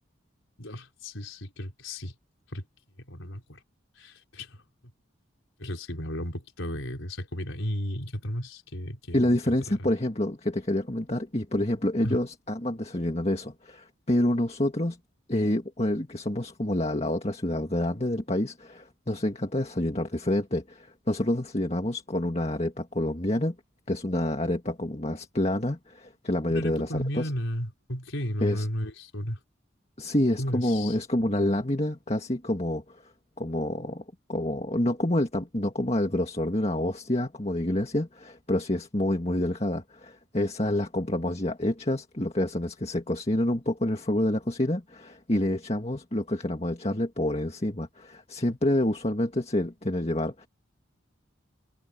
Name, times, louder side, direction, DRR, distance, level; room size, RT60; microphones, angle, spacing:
voice 1, 0.6-2.1 2.5-2.6 3.1-3.6 4.0-4.6 5.6-9.9 12.0-12.2 26.5-29.4 30.4-31.0, equal, 75° left, 4.3 m, -34 dB
voice 2, 9.1-15.0 15.3-23.6 23.9-27.3 28.4-28.7 30.0-32.8 33.4-34.0 34.3-50.5, left 1 dB, 30° left, 1.9 m, -28 dB
head